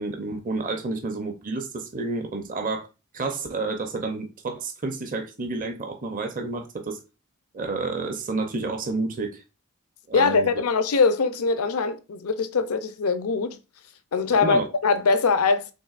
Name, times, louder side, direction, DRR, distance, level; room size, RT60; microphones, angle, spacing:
voice 1, 0.0-2.9 3.1-7.0 7.5-9.4 10.1-10.5 14.3-14.6, right 3 dB, 35° right, 0.7 m, -30 dB
voice 2, 10.1-13.6 14.1-15.7, left 4 dB, 75° left, 0.6 m, -22 dB
5.4 x 3.6 x 2.4 m
head